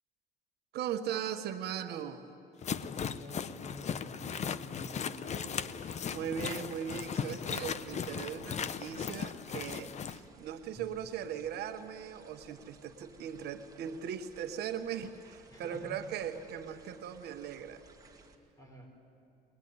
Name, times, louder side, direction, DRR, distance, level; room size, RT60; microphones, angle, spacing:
voice 1, 0.7-2.3 6.1-17.8, right 8 dB, 75° right, 7 dB, 1.3 m, -39 dB
sound 1, 2.6-10.2, left 7 dB, 45° left, 0.8 m, -37 dB
voice 2, 2.8-5.5 15.5-16.0 18.6-18.9, left 1 dB, 20° left, 2 dB, 5.9 m, -49 dB
sound 2, 5.5-18.4, right 4 dB, 20° right, 2.1 m, -60 dB
Drum, 10.8-13.1, right 1 dB, ahead, 2.2 m, -60 dB
22.0 x 20.5 x 9.6 m, 2.7 s
cardioid pair, 110°, 17 cm